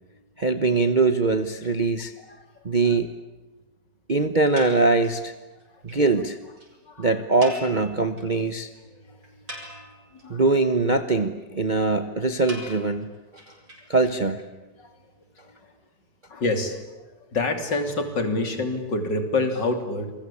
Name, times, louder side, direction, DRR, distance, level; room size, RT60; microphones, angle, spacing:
voice 1, 0.4-2.1 2.6-3.1 4.1-5.3 5.8-6.4 7.0-8.7 10.3-13.1 13.9-14.4, right 3 dB, 30° right, 9 dB, 1.1 m, -22 dB
sound 1, 4.6-5.3 5.6-5.7 5.9-6.0 6.3-6.4 6.6-6.7 7.4-8.4 8.7-8.8 9.2-10.2 12.5-14.4, equal, 50° right, 6.4 m, -41 dB
voice 2, 15.4-15.7 16.3-16.8 17.3-20.1, left 2 dB, 70° left, 7 dB, 3.8 m, -27 dB
28.0 x 22.5 x 8.6 m, 1.1 s
omnidirectional pair, 2.0 m